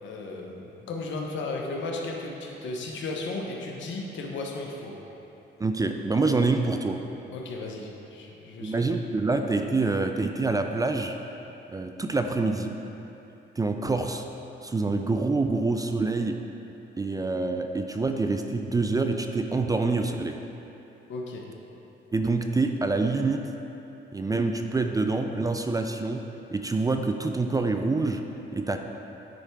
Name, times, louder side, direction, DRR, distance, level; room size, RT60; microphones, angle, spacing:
voice 1, 0.0-4.9 7.3-8.8 21.1-21.4, left 2 dB, 70° left, 0 dB, 1.0 m, -35 dB
voice 2, 5.6-7.0 8.6-11.1 11.7-12.7 13.6-14.2 14.6-16.4 17.0-20.4 22.1-23.4 24.1-26.2 26.5-28.2 28.5-28.8, right 3 dB, 20° right, 5 dB, 0.4 m, -26 dB
10.0 x 3.4 x 4.6 m, 3.0 s
cardioid pair, 90°, 20 cm